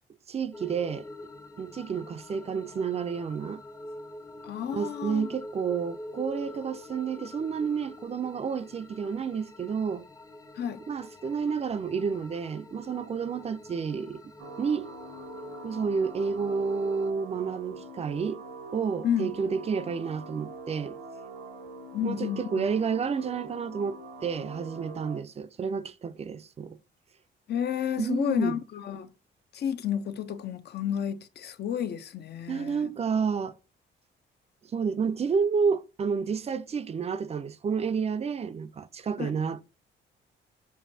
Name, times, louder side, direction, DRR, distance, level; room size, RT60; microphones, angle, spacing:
voice 1, 0.3-1.1 1.6-3.6 4.7-10.1 10.9-14.3 14.6-14.9 15.6-18.4 18.7-21.0 22.0-26.8 28.0-28.6 32.5-33.5 34.7-39.6, right 6 dB, 30° right, 0.4 m, -30 dB
sound 1, 0.5-17.1, left 1 dB, 15° left, 0.6 m, -46 dB
voice 2, 4.4-5.3 10.6-10.8 19.0-19.3 21.9-22.7 27.5-29.1 29.5-32.9 39.2-39.3, left 9 dB, 55° left, 0.6 m, -31 dB
sound 2, 14.4-25.2, right 2 dB, 80° right, 0.9 m, -43 dB
6.9 x 2.6 x 2.7 m
cardioid pair, 90°, 20 cm